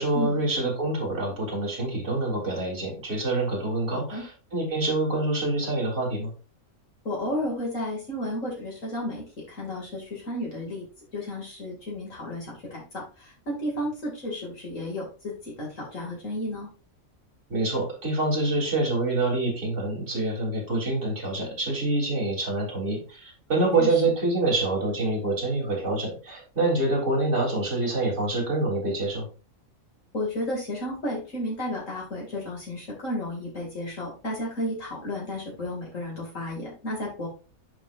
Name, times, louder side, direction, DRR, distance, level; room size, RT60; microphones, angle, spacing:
voice 1, 0.0-6.3 17.5-29.3, right 2 dB, 60° right, -3 dB, 3.9 m, -26 dB
voice 2, 3.9-4.2 7.0-10.8 11.1-16.7 23.8-24.0 30.1-37.3, left 1 dB, 70° left, -3 dB, 3.0 m, -33 dB
10.5 x 5.0 x 2.6 m, 0.35 s
omnidirectional pair, 1.4 m